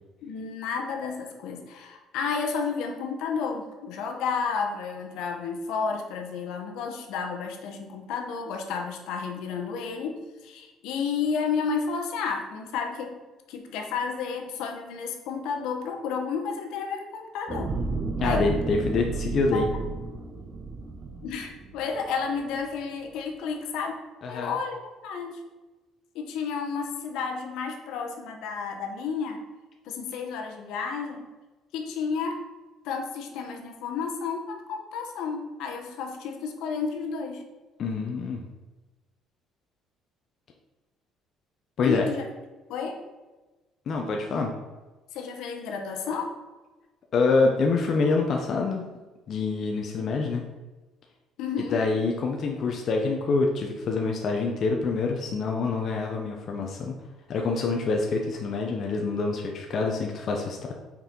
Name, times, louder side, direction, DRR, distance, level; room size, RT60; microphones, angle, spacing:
voice 1, 0.2-13.2 13.5-17.7 18.2-18.5 19.5-19.7 21.2-24.0 24.3-25.4 26.1-29.4 29.8-31.2 31.7-32.4 32.8-37.4 41.8-42.2 42.7-43.0 45.1-46.4 51.4-51.9, left 5 dB, 70° left, 3 dB, 0.9 m, -31 dB
sound 1, 17.5-22.0 22.5-22.6, right 3 dB, 25° right, 0.6 m, -32 dB
voice 2, 18.2-19.7 24.2-24.5 37.8-38.5 41.8-42.0 43.9-44.5 47.1-48.9 49.3-50.4 51.7-56.9 57.3-60.7, left 4 dB, 35° left, 1 dB, 0.5 m, -26 dB
5.7 x 4.4 x 3.7 m, 1.2 s
cardioid pair, 180°, 0 cm